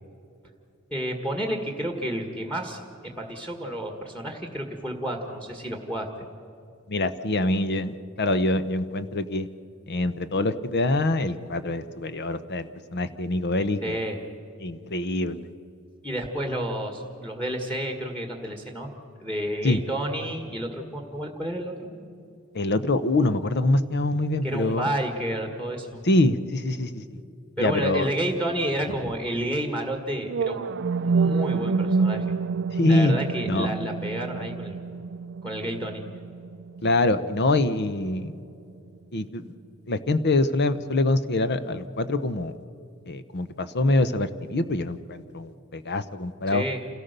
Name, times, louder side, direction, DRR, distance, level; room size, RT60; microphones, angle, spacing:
voice 1, 0.9-6.1 13.8-14.2 16.0-18.9 19.2-21.9 24.4-26.0 27.6-30.7 31.0-32.3 32.9-34.8 35.4-36.0 46.5-46.8, right 1 dB, 5° left, 4 dB, 1.8 m, -30 dB
voice 2, 6.9-9.5 9.9-14.0 14.6-15.4 19.6-19.8 22.5-24.9 26.0-27.0 27.6-28.1 32.7-33.1 33.4-33.7 36.8-38.3 39.1-39.5 39.9-42.5 43.1-46.6, left 2 dB, 50° left, 12 dB, 0.8 m, -24 dB
sound 1, 30.2-38.3, right 4 dB, 60° right, 0.5 m, -28 dB
28.5 x 17.5 x 6.8 m, 2.5 s
head